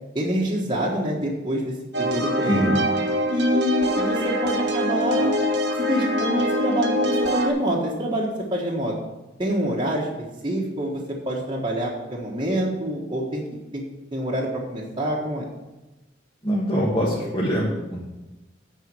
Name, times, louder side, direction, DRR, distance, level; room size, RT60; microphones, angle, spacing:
voice 1, 0.1-2.7 3.3-5.3 5.8-9.0 9.4-10.1 10.4-13.4 13.7-13.8 14.1-15.5, equal, 25° right, -4 dB, 1.4 m, -26 dB
sound 1, 1.9-7.5, equal, 60° right, 1.4 m, -24 dB
voice 2, 2.5-2.8 16.4-18.0, equal, 25° left, -7 dB, 1.6 m, -23 dB
9.2 x 4.8 x 7.7 m, 1.0 s
head